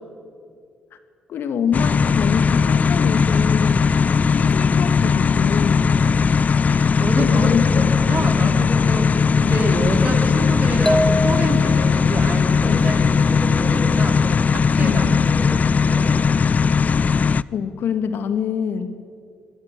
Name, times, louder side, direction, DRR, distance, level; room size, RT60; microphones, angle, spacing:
voice 1, 1.3-6.0 7.1-8.6 12.6-12.9 14.8-15.2 17.5-19.0, left 7 dB, 65° left, 10 dB, 1.6 m, -26 dB
sound 1, 1.7-17.4, left 5 dB, 40° left, 0.4 m, -18 dB
voice 2, 6.7-7.5 7.7-16.5, right 2 dB, 40° right, 4 dB, 4.2 m, -29 dB
sound 2, 10.9-12.0, left 1 dB, 5° left, 1.6 m, -23 dB
Telephone, 11.3-16.3, left 1 dB, 10° right, 2.9 m, -48 dB
19.5 x 17.0 x 8.8 m, 2.3 s
hypercardioid pair, 50°, 4 cm